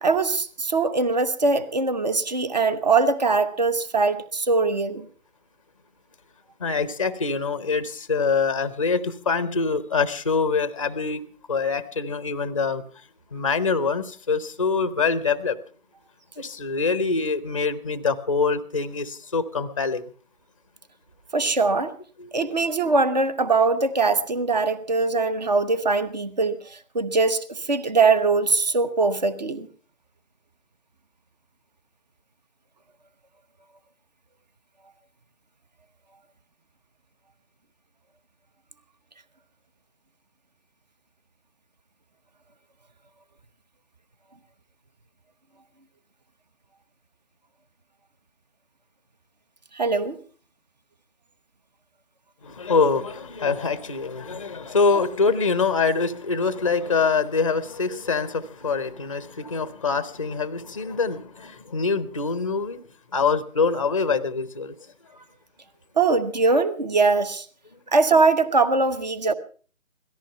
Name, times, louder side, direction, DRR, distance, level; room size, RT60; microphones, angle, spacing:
voice 1, 0.0-5.1 21.3-21.9 22.3-29.7 49.7-50.2 66.0-67.4 67.9-69.3, right 3 dB, 30° right, 1.1 m, -22 dB
voice 2, 6.6-11.2 11.5-12.8 13.3-15.6 16.4-20.1 22.2-22.5 52.4-62.8 63.1-64.8, left 4 dB, 25° left, 0.7 m, -24 dB
17.5 x 14.0 x 5.6 m
figure-of-eight pair, 155°, 40 cm